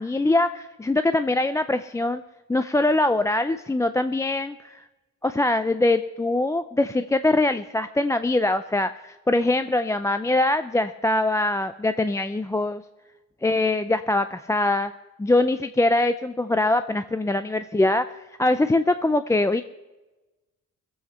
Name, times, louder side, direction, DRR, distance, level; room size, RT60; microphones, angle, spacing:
voice 1, 0.0-2.2 2.5-4.8 5.2-12.8 13.4-14.9 15.2-19.6, left 2 dB, 10° left, 11 dB, 0.4 m, -23 dB
20.5 x 7.9 x 5.7 m, 1.1 s
cardioid pair, 90°, 30 cm